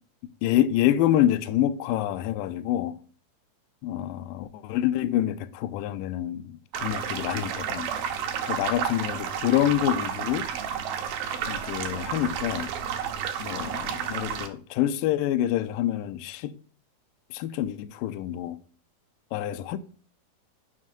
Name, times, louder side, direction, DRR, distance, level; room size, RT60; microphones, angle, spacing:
voice 1, 0.4-2.9 3.8-7.9 8.5-10.5 11.5-12.7 13.4-16.5 17.3-18.6 19.3-19.8, left 12 dB, 80° left, 2.1 m, -27 dB
sound 1, 6.7-14.5, right 8 dB, 80° right, 2.9 m, -31 dB
9.7 x 5.4 x 5.2 m
omnidirectional pair, 4.4 m